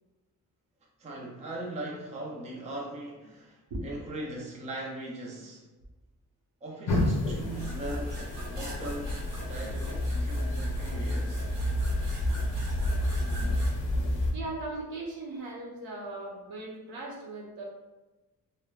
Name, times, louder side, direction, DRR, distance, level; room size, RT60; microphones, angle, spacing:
voice 1, 1.0-3.6 3.8-5.6 6.6-8.2 8.5-9.2 9.5-11.5, right 1 dB, 20° right, -2 dB, 0.3 m, -39 dB
sound 1, 6.9-14.3, left 1 dB, 60° left, 0.6 m, -30 dB
sound 2, 7.4-13.7, right 1 dB, 50° right, 0.8 m, -45 dB
voice 2, 14.3-17.6, right 2 dB, 85° right, -2 dB, 0.7 m, -38 dB
3.3 x 2.0 x 2.2 m, 1.1 s
wide cardioid pair, 180°, 35 cm